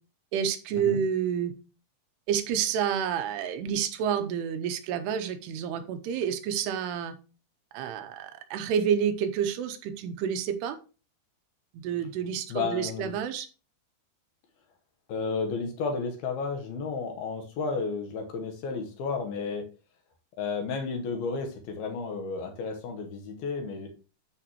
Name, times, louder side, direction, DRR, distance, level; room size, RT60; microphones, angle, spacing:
voice 1, 0.3-1.5 2.3-7.2 7.7-10.8 11.8-13.5, right 8 dB, 85° right, 8 dB, 2.8 m, -29 dB
voice 2, 12.5-13.1 15.1-19.7 20.4-23.9, left 4 dB, 70° left, 4 dB, 2.9 m, -32 dB
12.5 x 5.0 x 3.0 m, 0.34 s
omnidirectional pair, 4.8 m